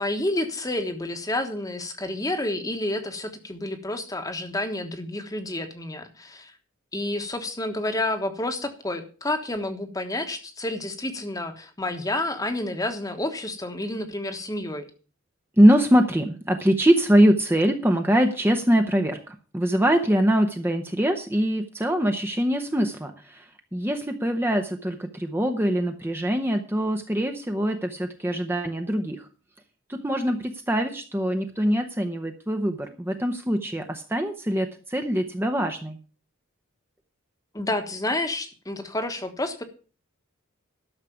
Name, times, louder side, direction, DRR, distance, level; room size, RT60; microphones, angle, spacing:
voice 1, 0.0-6.5 6.9-14.8 37.5-39.6, left 1 dB, 15° left, 8 dB, 1.2 m, -29 dB
voice 2, 15.6-29.3 29.9-36.0, equal, 10° right, 5 dB, 0.8 m, -23 dB
12.0 x 6.6 x 6.9 m, 0.37 s
head